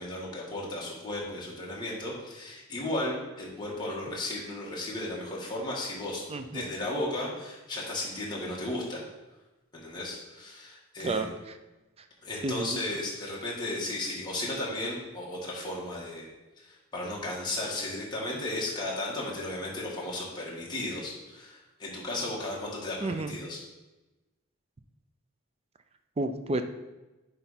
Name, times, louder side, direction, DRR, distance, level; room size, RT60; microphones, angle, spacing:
voice 1, 0.0-6.2 6.5-9.0 9.7-11.3 12.2-16.3 16.6-23.6, left 1 dB, 20° left, -5 dB, 1.7 m, -35 dB
voice 2, 6.3-6.7 11.0-11.5 12.4-12.8 23.0-23.4 26.2-26.6, right 2 dB, 30° right, 8 dB, 0.4 m, -31 dB
9.9 x 3.4 x 4.2 m, 1.1 s
head